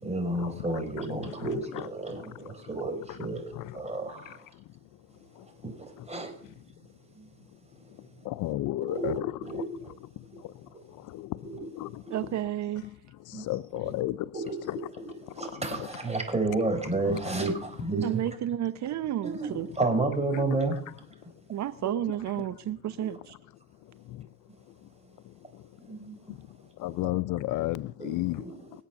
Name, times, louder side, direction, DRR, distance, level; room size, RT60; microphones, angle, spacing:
voice 1, 0.0-4.4 5.6-6.3 8.9-10.0 10.7-10.8 11.4-11.7 12.0-12.2 13.3-13.4 13.8-14.0 14.3-14.6 15.0-18.2 19.2-20.7 23.0-23.1 25.9-26.1 28.0-28.7, right 2 dB, 20° right, 4.5 m, -31 dB
voice 2, 8.3-9.3 11.1-11.3 11.8-11.9 13.5-14.2 14.7-14.8 26.8-28.4, left 16 dB, 90° left, 0.6 m, -31 dB
voice 3, 12.1-12.8 18.0-19.7 21.5-23.3, right 12 dB, 65° right, 0.8 m, -31 dB
21.5 x 8.3 x 7.0 m
cardioid pair, 90°, 30 cm